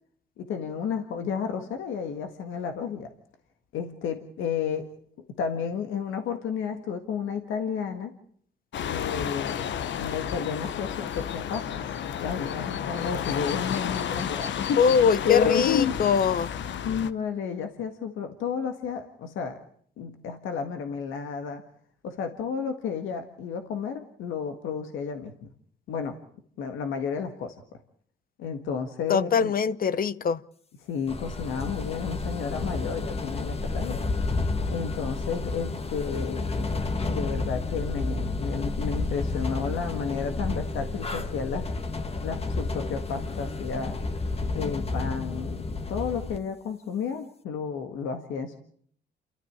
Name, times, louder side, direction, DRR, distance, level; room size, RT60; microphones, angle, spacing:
voice 1, 0.4-3.1 3.7-4.9 5.4-8.1 8.9-9.5 10.0-11.9 12.2-14.8 15.2-16.0 16.8-19.6 20.0-21.6 22.0-25.5 25.9-26.2 26.6-27.8 28.4-29.5 30.8-34.0 34.7-41.7 42.2-44.0 44.5-48.6, left 6 dB, 85° left, 1.8 m, -32 dB
sound 1, 8.7-17.1, left 9 dB, 65° left, 1.1 m, -32 dB
voice 2, 14.8-16.5 29.1-30.4, left 7 dB, 45° left, 0.9 m, -22 dB
sound 2, 31.1-46.4, left 3 dB, 30° left, 1.6 m, -31 dB
28.5 x 13.5 x 8.7 m
cardioid pair, 90°, 20 cm